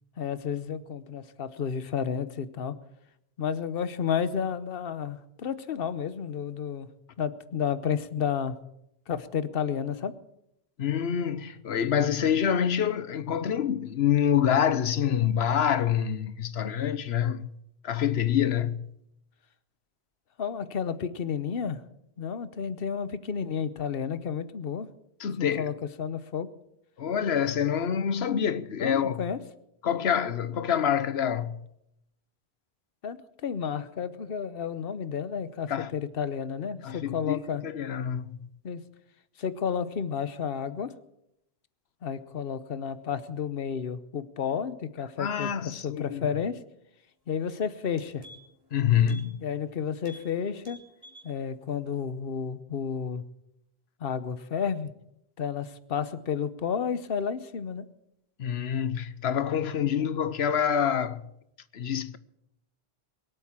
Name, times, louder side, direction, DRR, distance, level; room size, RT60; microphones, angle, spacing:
voice 1, 0.2-2.7 3.4-6.9 7.2-8.5 9.1-10.1 20.4-21.8 22.2-24.9 25.6-26.5 28.8-29.4 33.0-37.6 38.6-38.8 39.4-40.9 42.0-46.6 47.3-48.2 49.4-50.8 51.2-53.2 54.0-54.9 55.4-57.8 60.0-60.1, left 7 dB, 65° left, 1.1 m, -31 dB
voice 2, 10.8-17.5 17.8-18.9 25.2-25.7 27.0-29.3 29.8-31.6 35.7-35.9 36.8-38.5 45.2-46.3 48.7-49.5 58.4-61.2 61.7-62.2, left 8 dB, 85° left, 1.1 m, -26 dB
sound 1, 47.4-47.5 47.8-48.7 49.0-49.3 49.6-49.7 50.0-50.3 50.6-51.3 51.7-51.8, equal, 20° right, 3.0 m, -50 dB
22.5 x 8.4 x 7.3 m
omnidirectional pair, 1.0 m